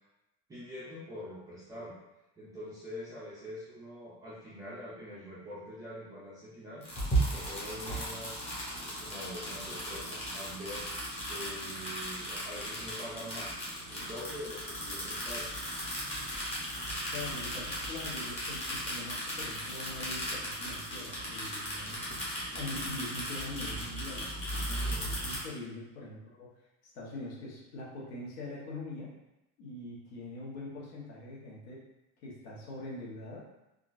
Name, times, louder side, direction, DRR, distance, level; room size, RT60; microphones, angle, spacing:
voice 1, 0.5-2.0 2.4-6.8 7.2-10.8 11.2-13.6 13.9-15.5 24.6-25.1, equal, 10° right, -10 dB, 0.3 m, -44 dB
sound 1, 6.8-25.4, right 1 dB, 20° left, 0.8 m, -36 dB
voice 2, 17.1-22.1 22.5-24.3 25.0-26.5 26.9-29.1 29.6-31.8 32.2-33.4, left 2 dB, 75° left, -5 dB, 1.1 m, -43 dB
3.7 x 2.3 x 2.4 m, 0.95 s
cardioid pair, 175°, 33 cm